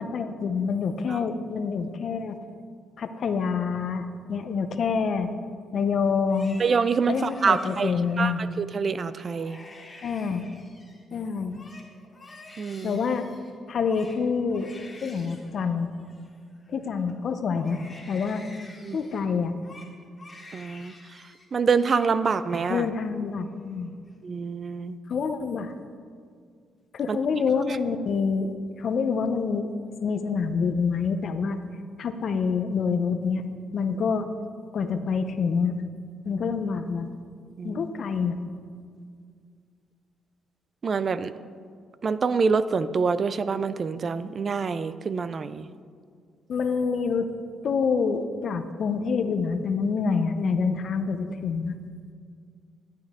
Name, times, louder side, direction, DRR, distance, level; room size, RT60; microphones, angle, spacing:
voice 1, 0.0-2.4 3.0-5.3 5.7-6.6 7.1-8.4 10.0-10.4 11.1-11.6 12.8-13.3 13.7-14.7 15.0-15.9 16.7-17.8 18.1-18.4 18.9-19.5 22.7-23.9 25.1-25.7 26.9-28.5 28.8-29.7 30.0-31.6 32.0-33.4 33.7-34.3 34.7-35.8 36.2-37.1 37.6-38.4 46.5-47.3 47.6-51.8, left 5 dB, 55° left, 9 dB, 0.6 m, -26 dB
Crying sobbing, 6.1-8.4 8.9-9.1 9.3-11.0 11.4-17.1 17.5-21.5 21.7-22.1 22.4-23.1 23.5-24.1, left 2 dB, 20° left, 1.8 m, -49 dB
voice 2, 6.6-7.9 8.2-9.6 12.6-13.0 18.8-19.0 20.5-20.9 21.5-22.9 24.2-25.0 27.1-27.2 37.6-37.9 40.8-41.3 42.0-45.7, right 5 dB, 45° right, 14 dB, 0.3 m, -26 dB
11.5 x 8.4 x 3.6 m, 2.1 s
cardioid pair, 90°, 0 cm